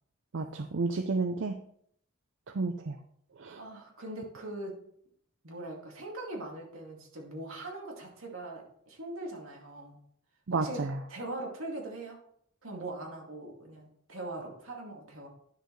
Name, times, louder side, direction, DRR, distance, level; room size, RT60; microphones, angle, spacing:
voice 1, 0.3-1.6 2.5-3.0 3.4-3.6 10.5-11.0, right 3 dB, 60° right, 6 dB, 0.5 m, -31 dB
voice 2, 3.6-4.8 5.4-10.0 10.6-12.2 12.6-15.3, right 2 dB, 85° right, 0 dB, 2.3 m, -41 dB
10.5 x 6.5 x 3.2 m, 0.66 s
head